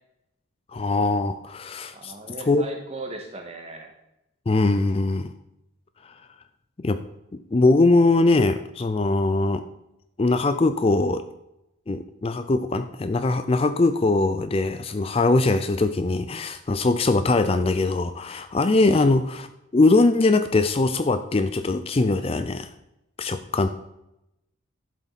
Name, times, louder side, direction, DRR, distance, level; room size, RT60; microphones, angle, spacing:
voice 1, 0.7-2.1 2.5-2.6 4.5-5.3 6.8-7.0 7.3-9.7 10.2-11.2 11.9-19.5 19.7-22.7 23.2-23.7, left 2 dB, 30° left, 11 dB, 0.4 m, -21 dB
voice 2, 1.9-3.9 18.8-19.1, right 2 dB, 30° right, 3 dB, 1.6 m, -38 dB
11.5 x 7.5 x 4.1 m, 0.87 s
head